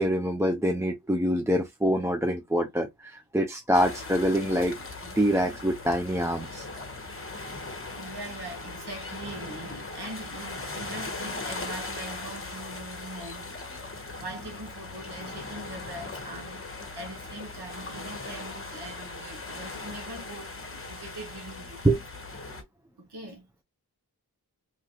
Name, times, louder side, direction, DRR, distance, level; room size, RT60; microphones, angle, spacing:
voice 1, 0.0-4.8 5.2-6.7 21.8-22.0, equal, 5° right, 0.5 m, -25 dB
sound 1, 3.7-22.6, left 3 dB, 35° left, 0.9 m, -39 dB
voice 2, 7.3-7.6 7.9-13.6 14.2-16.6 16.9-22.0 23.0-23.5, right 1 dB, 80° right, 1.3 m, -42 dB
3.0 x 2.4 x 2.8 m
wide cardioid pair, 50°, 39 cm